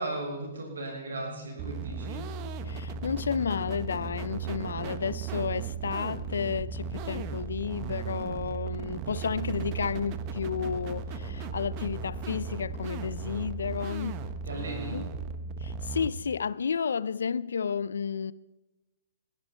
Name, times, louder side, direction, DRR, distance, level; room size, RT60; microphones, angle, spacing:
voice 1, 0.0-2.3 14.4-15.0, right 2 dB, 85° right, 7.2 m, -36 dB
sound 1, 1.6-16.1, right 5 dB, 40° right, 1.2 m, -36 dB
voice 2, 2.7-14.2 14.9-15.0 15.6-18.3, left 6 dB, 85° left, 0.5 m, -32 dB
21.0 x 13.5 x 4.4 m
hypercardioid pair, 130°, 0 cm